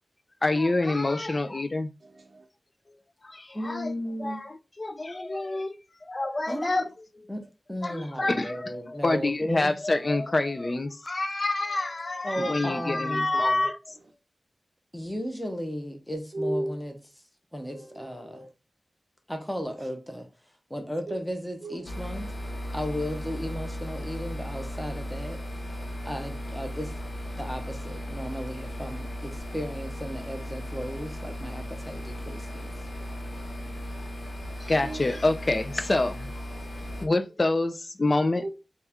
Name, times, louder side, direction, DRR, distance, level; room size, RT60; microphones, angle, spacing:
voice 1, 0.4-1.9 3.2-3.9 4.2-4.5 4.8-5.8 6.0-6.9 7.8-14.0 34.6-36.3 36.8-38.5, left 2 dB, 35° left, 0.4 m, -27 dB
voice 2, 2.0-2.4 6.7-6.8 16.3-16.7 17.7-18.5 21.1-21.2 21.6-21.8 33.2-33.7 34.8-35.2 38.4-38.5, right 1 dB, 65° right, 0.5 m, -35 dB
voice 3, 3.5-4.4 6.5-6.8 7.3-7.4 7.7-9.7 12.2-13.3 14.9-17.0 17.5-18.4 19.3-20.3 20.7-22.3 22.7-25.4 26.0-26.9 27.3-32.8, equal, 5° left, 0.8 m, -35 dB
sound 1, 21.9-37.1, equal, 55° left, 0.8 m, -36 dB
4.1 x 2.4 x 3.4 m
wide cardioid pair, 95°, 0 cm